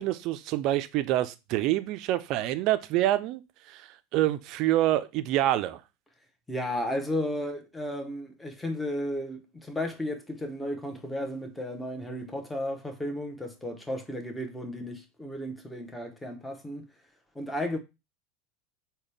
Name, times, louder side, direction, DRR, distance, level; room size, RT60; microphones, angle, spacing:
voice 1, 0.0-3.4 3.7-5.8, right 14 dB, 55° right, 0.4 m, -27 dB
voice 2, 6.5-16.9 17.3-17.8, left 1 dB, 10° left, 0.8 m, -34 dB
3.9 x 2.2 x 3.2 m
supercardioid pair, 110°, 0 cm